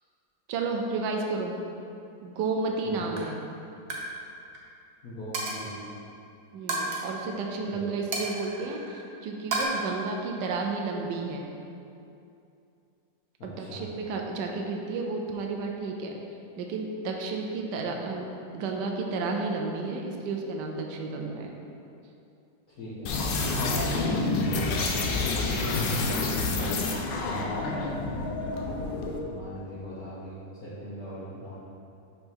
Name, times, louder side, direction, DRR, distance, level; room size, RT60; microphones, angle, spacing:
voice 1, 0.5-1.6 2.2-3.4 6.5-11.5 13.4-16.2 16.6-18.3 18.5-21.5 23.7-23.9, right 3 dB, 75° right, 1 dB, 1.2 m, -32 dB
Coin (dropping), 2.6-2.9 3.1-3.4 3.7-4.1 4.4-4.6 5.3-5.8 6.7-7.0 8.1-9.0 9.5-9.6, right 3 dB, 55° right, 1.2 m, -32 dB
voice 2, 5.0-5.8 7.7-7.8 13.6-13.9 22.8-23.1 27.1-28.3 29.3-31.5, equal, 55° left, -12 dB, 1.7 m, -40 dB
sound 1, 23.1-29.2, left 3 dB, 75° left, 1.3 m, -28 dB
5.4 x 5.2 x 4.6 m, 2.6 s
omnidirectional pair, 2.0 m